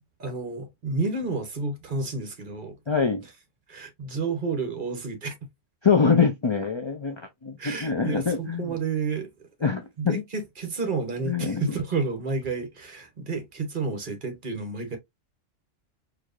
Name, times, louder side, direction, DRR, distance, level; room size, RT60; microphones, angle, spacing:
voice 1, 0.2-2.8 3.7-5.3 7.6-9.5 10.0-15.0, right 4 dB, 45° right, 1.0 m, -30 dB
voice 2, 2.9-3.2 5.8-8.7 9.6-10.2 11.3-11.7, left 5 dB, 50° left, 0.3 m, -24 dB
4.5 x 2.7 x 2.4 m
omnidirectional pair, 1.3 m